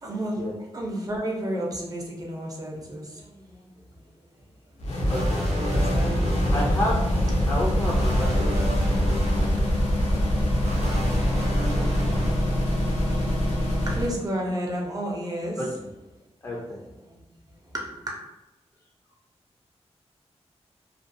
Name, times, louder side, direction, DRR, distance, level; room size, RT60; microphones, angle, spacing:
voice 1, 0.0-0.4 0.7-3.7 4.0-4.1 5.8-6.5 13.9-15.6 17.0-17.2 17.7-18.1, right 1 dB, 30° right, -2 dB, 0.6 m, -31 dB
sound 1, 4.8-14.2, equal, 80° left, 0.7 m, -24 dB
voice 2, 5.1-5.4 6.5-7.0 7.4-8.7 15.6-15.9 16.4-16.8, left 1 dB, 25° left, -4 dB, 0.4 m, -30 dB
sound 2, 5.1-6.6 7.8-9.5 10.6-12.3, equal, 70° right, 0.8 m, -32 dB
2.4 x 2.2 x 2.6 m, 0.97 s
wide cardioid pair, 100°, 12 cm